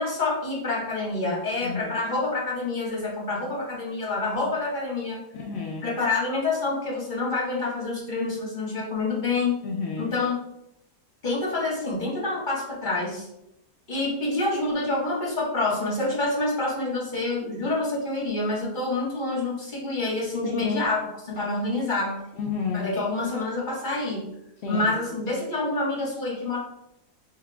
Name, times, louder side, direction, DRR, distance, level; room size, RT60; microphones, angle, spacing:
voice 1, 0.0-5.2 5.8-9.5 10.0-10.3 11.2-13.3 13.9-22.2 22.7-24.2 24.7-26.6, left 2 dB, 30° left, -5 dB, 1.4 m, -27 dB
voice 2, 5.3-5.8 9.6-10.1 20.6-20.8 22.4-22.9 24.6-24.8, left 5 dB, 65° left, -1 dB, 0.6 m, -30 dB
6.5 x 3.3 x 2.3 m, 0.82 s
omnidirectional pair, 1.8 m